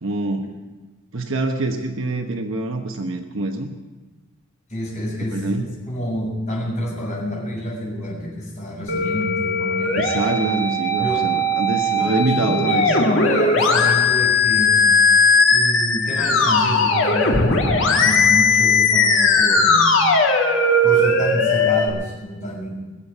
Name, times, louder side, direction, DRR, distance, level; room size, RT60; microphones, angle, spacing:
voice 1, 0.0-0.6 1.1-3.7 5.3-5.7 10.0-12.9, right 2 dB, 75° right, 4 dB, 1.1 m, -25 dB
voice 2, 4.7-10.1 11.0-11.3 11.9-15.0 15.5-19.9 20.8-22.7, equal, 40° left, -10 dB, 5.6 m, -28 dB
Musical instrument, 8.9-21.9, left 3 dB, 70° left, 2.0 m, -18 dB
22.0 x 7.3 x 8.1 m, 1.2 s
head